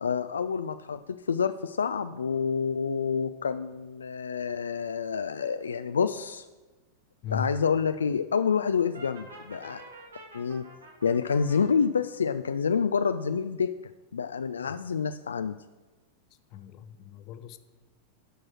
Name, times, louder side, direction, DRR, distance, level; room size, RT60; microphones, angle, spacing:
voice 1, 0.0-6.5 7.3-9.8 10.3-10.6 11.0-13.7 14.1-15.6, left 6 dB, 70° left, 0.3 m, -28 dB
Brass instrument, 8.9-11.7, right 2 dB, 75° right, 2.4 m, -48 dB
voice 2, 16.5-17.6, left 7 dB, 40° left, 0.7 m, -37 dB
11.5 x 6.2 x 6.2 m
figure-of-eight pair, 90°, 0 cm